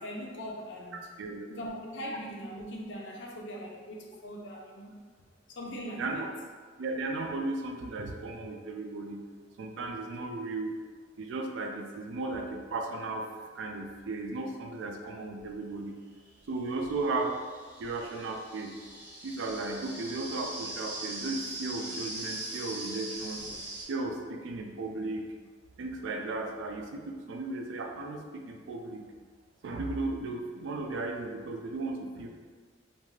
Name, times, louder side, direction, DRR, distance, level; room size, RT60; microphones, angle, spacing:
voice 1, 0.0-1.1 1.5-5.0 5.5-6.3 17.8-17.9, equal, 65° left, 0 dB, 0.5 m, -40 dB
voice 2, 5.7-6.3 6.8-9.2 9.6-10.7 11.2-13.3 13.5-15.9 16.5-17.3 17.8-18.7 19.2-23.4 23.9-25.2 25.8-29.0 29.6-32.3, right 3 dB, 70° right, 3 dB, 0.3 m, -35 dB
sound 1, 15.4-15.5 16.4-23.9, right 2 dB, 10° right, 0.5 m, -41 dB
3.1 x 2.5 x 2.3 m, 1.5 s
head